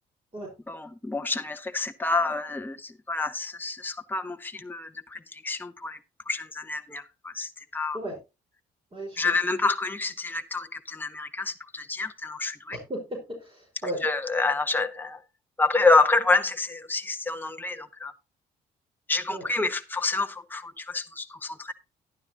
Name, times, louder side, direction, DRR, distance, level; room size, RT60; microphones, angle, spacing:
voice 1, 0.7-6.0 6.3-8.0 9.2-12.8 14.0-15.2 15.6-18.1 19.1-21.7, left 3 dB, 10° left, 0.9 m, -28 dB
voice 2, 8.9-9.4 12.7-14.0 19.3-19.5, right 1 dB, 30° right, 4.9 m, -35 dB
11.5 x 11.0 x 2.9 m
supercardioid pair, 60°, 18 cm